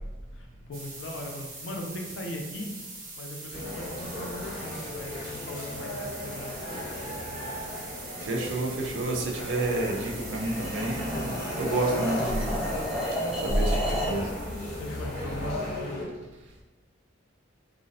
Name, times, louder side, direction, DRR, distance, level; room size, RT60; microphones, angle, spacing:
voice 1, 0.3-2.7 3.2-7.6 14.8-16.1, left 1 dB, 65° left, 1 dB, 0.4 m, -39 dB
sound 1, 0.7-15.9, right 2 dB, 90° right, 0.8 m, -43 dB
sound 2, 3.5-16.0, left 1 dB, 45° left, 0.8 m, -36 dB
voice 2, 8.2-12.6 13.0-14.3, right 2 dB, 65° right, -1 dB, 0.4 m, -29 dB
sound 3, 9.8-14.2, equal, 5° right, 0.5 m, -33 dB
2.4 x 2.0 x 2.6 m, 1.1 s
head